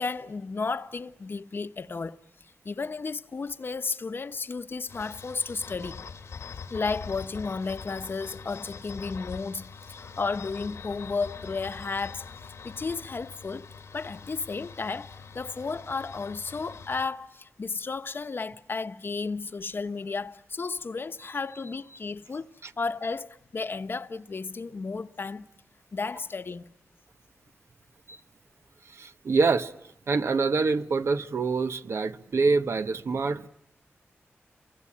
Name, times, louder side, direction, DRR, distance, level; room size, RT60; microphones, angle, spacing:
voice 1, 0.0-2.2 2.6-6.1 6.7-13.7 13.9-22.5 22.8-25.5 25.9-26.6, left 4 dB, 50° left, 1.0 m, -33 dB
sound 1, 4.9-17.1, left 5 dB, 90° left, 1.7 m, -43 dB
voice 2, 28.9-29.7 30.1-33.5, right 4 dB, 70° right, 1.2 m, -26 dB
28.5 x 24.0 x 8.6 m
wide cardioid pair, 80°, 5 cm